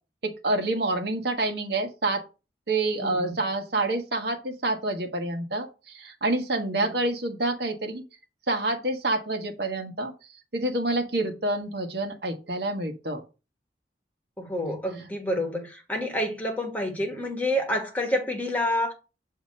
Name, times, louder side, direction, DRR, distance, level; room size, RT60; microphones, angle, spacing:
voice 1, 0.2-2.2 2.7-8.0 8.5-10.1 10.5-13.2, right 2 dB, 65° right, 1.3 m, -27 dB
voice 2, 3.0-3.3 6.8-7.0 14.4-18.9, left 1 dB, 10° left, 1.5 m, -28 dB
7.0 x 2.9 x 5.3 m
head